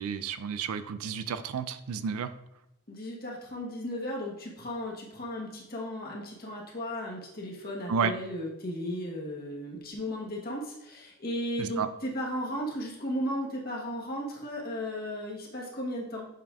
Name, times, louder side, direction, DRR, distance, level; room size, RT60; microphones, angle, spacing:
voice 1, 0.0-2.3 7.9-8.1 11.6-11.9, right 6 dB, 80° right, 12 dB, 0.4 m, -31 dB
voice 2, 2.9-16.3, equal, 45° left, -2 dB, 1.2 m, -35 dB
7.6 x 5.2 x 2.4 m, 0.85 s
head